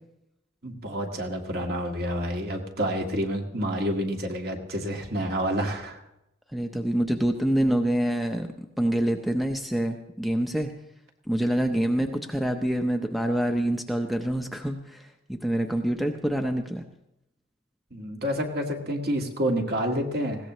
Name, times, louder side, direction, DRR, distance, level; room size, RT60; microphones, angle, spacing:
voice 1, 0.6-6.0 17.9-20.5, equal, 50° right, 2 dB, 1.9 m, -29 dB
voice 2, 6.5-10.7 11.3-16.8, right 1 dB, ahead, 4 dB, 0.7 m, -26 dB
20.5 x 16.5 x 3.1 m, 0.86 s
head